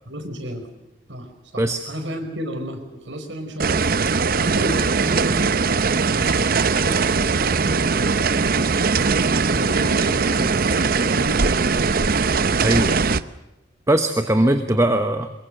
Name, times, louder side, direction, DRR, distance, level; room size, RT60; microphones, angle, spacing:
voice 1, 0.1-0.7 1.1-3.8 4.3-8.7 9.5-11.7 14.2-14.7, equal, 75° right, 5 dB, 5.0 m, -33 dB
sound 1, 3.6-13.2, right 4 dB, 50° right, 0.7 m, -20 dB
voice 2, 12.6-13.0 13.9-15.3, right 1 dB, 15° right, 7 dB, 1.0 m, -19 dB
23.5 x 22.5 x 6.6 m, 0.98 s
head